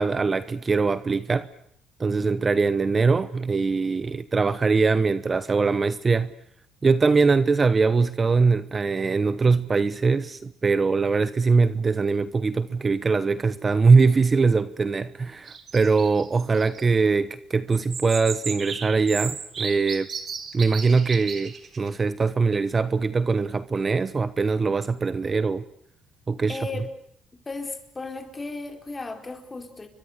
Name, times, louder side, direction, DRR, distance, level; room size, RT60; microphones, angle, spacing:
voice 1, 0.0-1.5 2.0-6.3 6.8-20.1 20.5-25.6 26.3-26.6, right 4 dB, 25° right, 1.0 m, -22 dB
sound 1, 15.5-16.8 17.7-21.9, right 6 dB, 40° right, 3.9 m, -35 dB
voice 2, 26.5-26.9 27.5-29.9, left 3 dB, 20° left, 4.5 m, -35 dB
30.0 x 24.0 x 6.6 m
cardioid pair, 115°, 0 cm